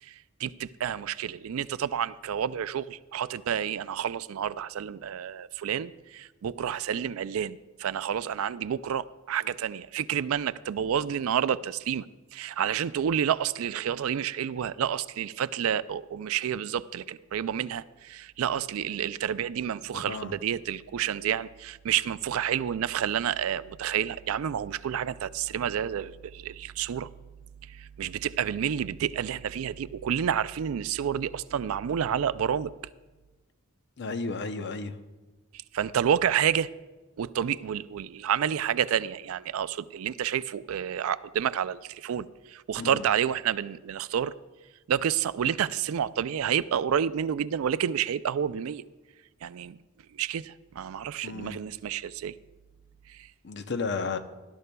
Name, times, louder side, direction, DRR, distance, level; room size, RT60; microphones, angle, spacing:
voice 1, 0.0-12.1 12.3-27.1 27.6-32.7 35.5-36.7 37.2-44.3 44.9-48.8 49.4-49.8 50.1-52.4 53.1-53.3, right 9 dB, 75° right, 0.4 m, -29 dB
voice 2, 19.9-20.3 34.0-34.9 42.8-43.0 51.2-51.6 53.4-54.2, left 4 dB, 55° left, 0.7 m, -33 dB
18.5 x 12.0 x 2.3 m
head